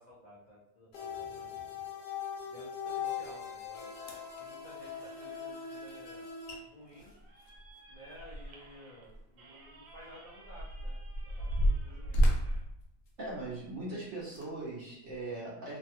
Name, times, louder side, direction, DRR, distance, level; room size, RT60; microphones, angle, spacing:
voice 1, 0.0-1.7 2.4-6.2 6.6-7.2 7.9-11.0 11.2-12.4, equal, 50° left, -8 dB, 0.5 m, -54 dB
sound 1, 0.9-6.6, left 7 dB, 85° left, 1.2 m, -41 dB
sound 2, 4.0-4.4 6.1-6.2 6.5-6.6 6.9-8.7 9.1-9.2 9.9-13.7 14.2-14.5 15.1-15.2, equal, 65° left, 0.9 m, -31 dB
sound 3, 4.8-12.6, right 2 dB, 80° right, 1.2 m, -59 dB
voice 2, 13.2-15.8, right 2 dB, 55° right, -5 dB, 1.0 m, -40 dB
3.1 x 2.2 x 2.9 m, 0.79 s
omnidirectional pair, 1.7 m